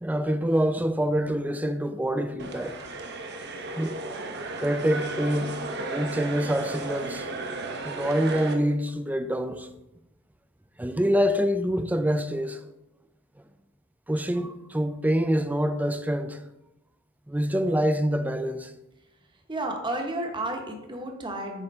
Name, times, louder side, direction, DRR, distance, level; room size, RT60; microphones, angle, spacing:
voice 1, 0.0-2.8 3.8-4.0 4.6-7.3 7.8-9.7 10.8-12.6 14.1-16.4 17.3-18.7, equal, 10° right, 0.4 m, -26 dB
sound 1, 2.4-8.5, right 2 dB, 55° right, 1.0 m, -34 dB
voice 2, 19.5-21.6, right 1 dB, 25° right, 1.0 m, -32 dB
8.8 x 3.7 x 5.4 m
head